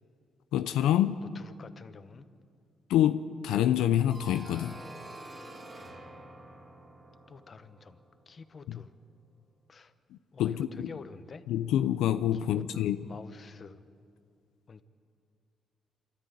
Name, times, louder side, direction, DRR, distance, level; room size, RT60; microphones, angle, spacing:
voice 1, 0.5-1.2 2.9-4.8 8.7-8.8 10.4-10.9 11.5-13.1, left 11 dB, 90° left, 9 dB, 0.6 m, -27 dB
voice 2, 1.3-2.3 7.3-8.0 8.3-8.9 9.7-9.9 10.3-11.4 12.3-13.8 14.7-14.8, left 5 dB, 40° left, 10 dB, 1.1 m, -48 dB
sound 1, 4.1-8.8, right 2 dB, 30° right, 3.3 m, -48 dB
26.5 x 13.0 x 9.5 m, 2.3 s
cardioid pair, 90°, 0 cm